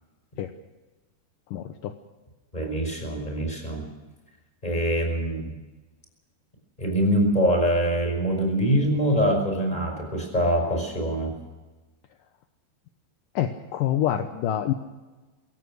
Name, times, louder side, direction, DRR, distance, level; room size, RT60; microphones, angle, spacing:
voice 1, 1.5-1.9 13.4-14.7, left 11 dB, 75° left, 7 dB, 2.0 m, -26 dB
voice 2, 2.5-3.8 4.6-5.5 6.8-11.4, equal, 10° left, 3 dB, 5.1 m, -24 dB
24.0 x 16.5 x 6.4 m, 1.2 s
omnidirectional pair, 5.1 m